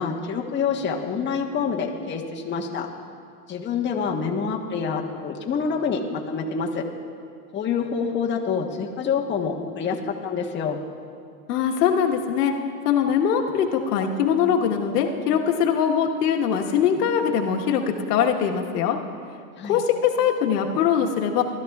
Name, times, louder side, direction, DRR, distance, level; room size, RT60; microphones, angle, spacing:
voice 1, 0.0-2.9 3.5-6.9 7.5-10.8 19.6-19.8, left 6 dB, 25° left, 0 dB, 1.1 m, -27 dB
voice 2, 11.5-12.5 12.8-17.8 18.1-19.0 19.6-21.4, left 8 dB, 80° left, 1 dB, 1.4 m, -22 dB
19.5 x 13.0 x 2.4 m, 2.3 s
supercardioid pair, 120°, 46 cm